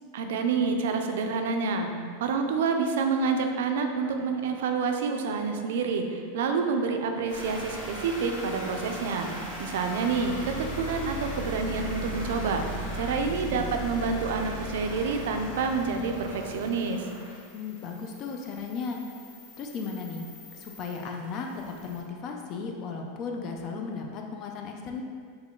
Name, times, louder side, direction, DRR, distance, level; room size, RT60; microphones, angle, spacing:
voice 1, 0.1-12.7 12.9-17.1, right 4 dB, 75° right, 5 dB, 0.3 m, -28 dB
sound 1, 7.3-22.0, equal, 75° left, 1.4 m, -38 dB
voice 2, 13.3-13.8 17.5-19.0 19.6-25.0, left 5 dB, 45° left, 2 dB, 0.3 m, -36 dB
2.9 x 2.2 x 3.6 m, 2.1 s
hypercardioid pair, 115°, 0 cm